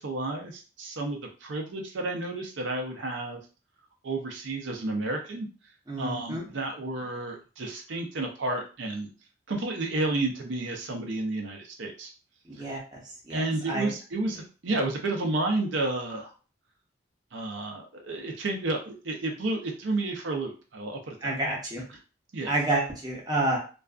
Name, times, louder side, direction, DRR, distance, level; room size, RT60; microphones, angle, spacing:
voice 1, 0.0-3.4 4.0-5.5 6.0-9.1 9.5-12.1 13.3-16.3 17.3-21.5 22.3-22.5, right 2 dB, 85° right, 2 dB, 0.6 m, -31 dB
voice 2, 5.9-6.5 12.4-13.0 13.3-13.9 21.2-21.8 22.5-23.6, right 2 dB, 20° right, -2 dB, 0.7 m, -29 dB
2.4 x 2.3 x 2.3 m, 0.35 s
head